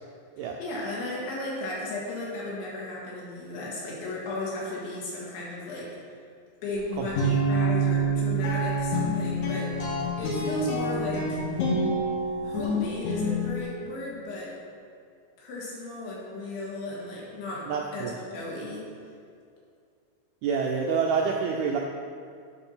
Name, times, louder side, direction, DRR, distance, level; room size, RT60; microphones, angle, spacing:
voice 1, 0.6-6.0 6.6-9.8 10.2-11.4 12.4-14.6 15.4-18.9, left 2 dB, 85° left, -5 dB, 4.3 m, -35 dB
sound 1, 6.7-13.6, right 1 dB, 60° left, 2.1 m, -27 dB
voice 2, 7.0-7.4 17.7-18.1 20.4-21.8, right 5 dB, 85° right, 0 dB, 2.2 m, -27 dB
11.5 x 4.7 x 5.6 m, 2.2 s
omnidirectional pair, 5.1 m